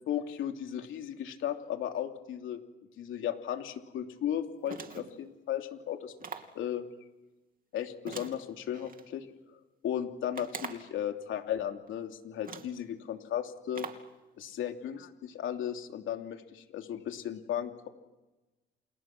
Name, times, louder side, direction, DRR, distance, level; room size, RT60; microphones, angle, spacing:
voice 1, 0.1-2.6 3.0-6.1 6.5-6.8 7.7-9.6 9.8-13.9 14.4-17.9, left 10 dB, 80° left, 4 dB, 3.1 m, -35 dB
sound 1, 4.6-5.2 6.2-6.6 8.1-9.1 10.3-11.0 11.9-12.0 12.4-12.8 13.7-14.1, right 6 dB, 45° right, 3.0 m, -43 dB
29.0 x 29.0 x 6.2 m, 1.1 s
cardioid pair, 90°, 20 cm